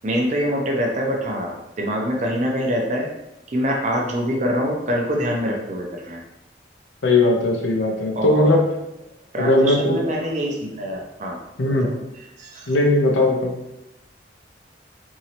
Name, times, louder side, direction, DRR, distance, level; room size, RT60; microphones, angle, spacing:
voice 1, 0.0-3.1 3.5-6.2 8.1-8.5 9.3-11.4 11.7-11.8 12.4-12.7, equal, 40° right, 0 dB, 0.6 m, -24 dB
voice 2, 7.0-8.6 9.4-10.0 11.6-11.9 12.7-13.5, left 2 dB, 80° left, 0 dB, 0.6 m, -18 dB
3.0 x 2.7 x 2.8 m, 0.89 s
head